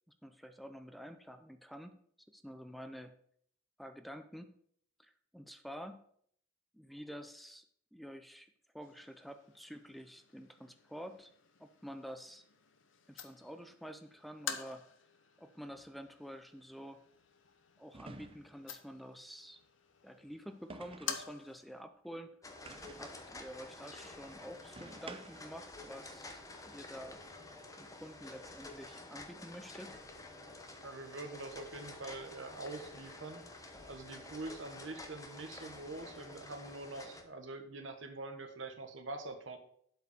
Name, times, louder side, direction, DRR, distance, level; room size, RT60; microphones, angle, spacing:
voice 1, 0.2-2.0 2.3-3.1 3.8-4.5 5.0-6.0 6.7-7.6 7.9-11.3 11.6-12.4 13.1-14.8 15.4-17.0 17.8-19.6 20.0-22.4 23.0-27.2 27.7-30.0, equal, ahead, 9 dB, 0.5 m, -49 dB
sound 1, 8.8-21.8, left 7 dB, 70° left, 0.9 m, -49 dB
sound 2, 15.7-15.9 17.9-18.7 20.7-21.3 22.7-23.2 24.8-25.6, right 3 dB, 30° right, 0.8 m, -50 dB
sound 3, 22.4-37.2, left 2 dB, 15° left, 1.0 m, -50 dB
voice 2, 30.8-39.6, right 2 dB, 70° right, 6 dB, 1.4 m, -45 dB
7.9 x 5.0 x 6.7 m, 0.64 s
head